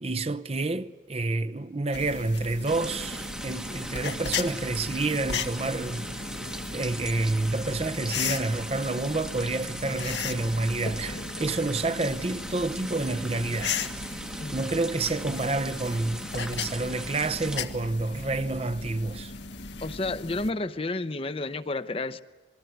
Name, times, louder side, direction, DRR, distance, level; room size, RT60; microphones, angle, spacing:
voice 1, 0.0-6.1 6.7-13.7 14.5-19.3, right 2 dB, 35° right, 0.7 m, -29 dB
sound 1, 1.9-20.5, left 5 dB, 85° left, 1.7 m, -37 dB
sound 2, 2.7-17.6, right 1 dB, 5° right, 1.0 m, -39 dB
voice 2, 19.8-22.2, left 2 dB, 30° left, 0.8 m, -31 dB
27.5 x 20.5 x 9.3 m
head